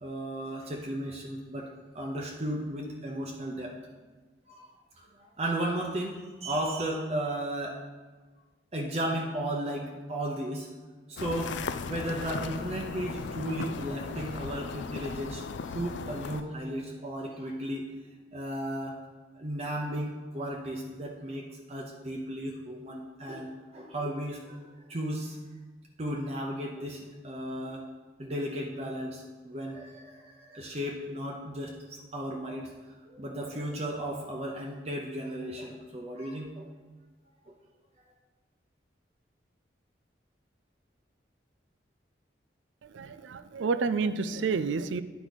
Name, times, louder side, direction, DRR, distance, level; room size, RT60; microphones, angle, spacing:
voice 1, 0.0-1.7 1.9-3.8 4.5-7.8 8.7-10.7 11.1-11.6 11.9-17.9 18.3-19.0 19.3-25.4 26.0-27.9 28.2-36.7 37.4-37.5, right 1 dB, 35° right, -1 dB, 0.6 m, -35 dB
sound 1, 11.2-16.4, left 5 dB, 75° left, 0.4 m, -37 dB
voice 2, 42.8-45.0, right 4 dB, 85° right, 13 dB, 0.4 m, -29 dB
10.0 x 4.6 x 4.0 m, 1.3 s
head